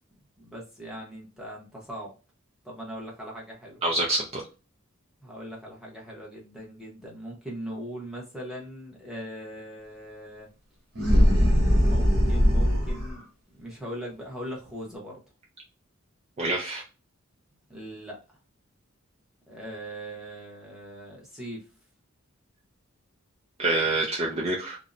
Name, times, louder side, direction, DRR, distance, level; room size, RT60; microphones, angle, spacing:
voice 1, 0.4-2.1 2.6-3.8 5.2-10.5 11.8-15.2 17.7-18.2 19.5-21.7, equal, 5° right, -4 dB, 0.8 m, -40 dB
voice 2, 3.8-4.4 16.4-16.8 23.6-24.8, right 2 dB, 30° right, -2 dB, 0.4 m, -26 dB
sound 1, 10.9-13.1, equal, 50° right, 0.9 m, -20 dB
2.6 x 2.1 x 2.4 m, 0.32 s
head